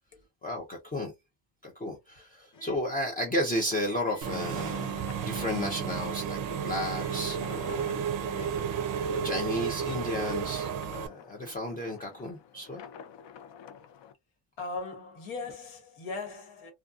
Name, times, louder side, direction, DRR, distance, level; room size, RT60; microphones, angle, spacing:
voice 1, 0.4-1.1 1.6-8.5 9.2-12.8, left 1 dB, 20° left, 0.4 m, -33 dB
sound 1, 2.5-3.1 4.0-4.6 5.5-6.1 6.9-7.5 8.3-8.8 9.6-10.1 10.9-11.0, right 1 dB, 40° left, 0.9 m, -53 dB
sound 2, 2.9-14.1, left 8 dB, 60° left, 0.6 m, -49 dB
Engine / Mechanisms, 4.2-11.1, right 8 dB, 45° right, 0.5 m, -32 dB
voice 2, 14.6-16.7, left 3 dB, 80° left, 1.3 m, -38 dB
2.5 x 2.3 x 2.3 m
cardioid pair, 135°, 48 cm